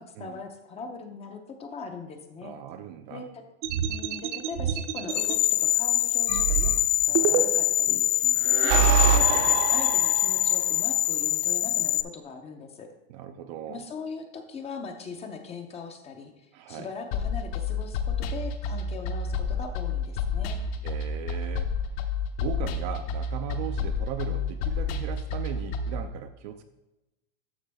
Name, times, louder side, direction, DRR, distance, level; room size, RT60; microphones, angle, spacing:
voice 1, 0.0-2.5 3.1-3.2 3.9-6.7 7.0-8.3 8.6-12.9 13.7-20.6, left 5 dB, 15° left, 6 dB, 0.6 m, -40 dB
voice 2, 2.4-3.3 7.9-8.6 13.1-13.9 16.5-16.9 20.8-21.7 22.0-22.1 22.4-26.6, right 9 dB, 35° right, 7 dB, 0.4 m, -38 dB
sound 1, 3.6-5.4 6.3-7.8 8.4-10.6, right 8 dB, 60° right, 0.9 m, -26 dB
sound 2, 5.1-12.0, left 13 dB, 75° left, 0.6 m, -24 dB
sound 3, 17.1-26.0, left 4 dB, 50° left, 1.0 m, -30 dB
12.0 x 6.0 x 3.4 m, 0.98 s
supercardioid pair, 145°, 39 cm